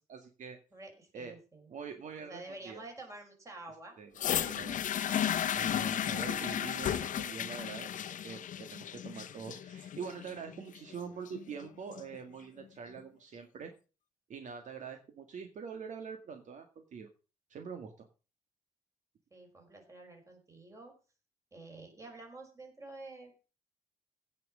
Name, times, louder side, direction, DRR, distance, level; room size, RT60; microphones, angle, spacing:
voice 1, 0.1-0.6 1.1-1.4 1.7-2.8 4.0-5.0 5.5-13.7 14.3-17.1 17.5-18.1, right 6 dB, 55° right, 5 dB, 1.8 m, -44 dB
voice 2, 0.7-1.7 2.2-4.0 6.0-6.4 19.3-20.9 21.5-23.3, right 2 dB, 20° right, 2 dB, 5.4 m, -49 dB
sound 1, 4.2-12.2 13.0-13.1, left 10 dB, 60° left, 0.9 m, -34 dB
16.5 x 6.1 x 6.3 m, 0.34 s
cardioid pair, 150°, 15 cm